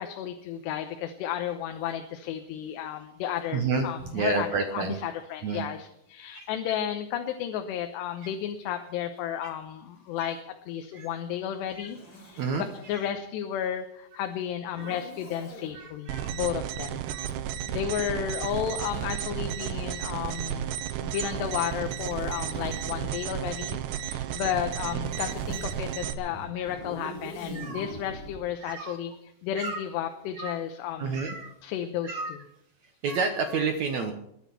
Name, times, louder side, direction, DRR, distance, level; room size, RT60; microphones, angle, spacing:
voice 1, 0.0-10.4 10.7-17.0 17.7-20.7 21.0-29.1 29.4-31.2 31.6-32.4, left 10 dB, 90° left, 6 dB, 3.1 m, -33 dB
voice 2, 3.5-5.0 5.4-5.6 6.3-6.5 10.2-10.3 10.9-11.1 11.7-11.9 12.4-12.6 14.8-15.0 15.7-16.3 17.0-17.3 20.0-20.2 21.1-21.3 22.8-22.9 24.0-24.4 25.1-25.3 27.5-27.9 28.6-29.0 29.6-29.8 30.4-30.6 31.0-31.5 32.0-32.4 33.0-34.1, right 4 dB, 75° right, 5 dB, 1.6 m, -31 dB
Zipper (clothing), 11.7-13.1 14.7-15.8 17.2-20.4 21.2-23.5 24.4-28.4, left 1 dB, 25° left, 4.6 m, -45 dB
sound 1, 16.1-26.1, right 10 dB, 90° right, 3.1 m, -33 dB
21.5 x 8.2 x 7.0 m, 0.78 s
omnidirectional pair, 4.8 m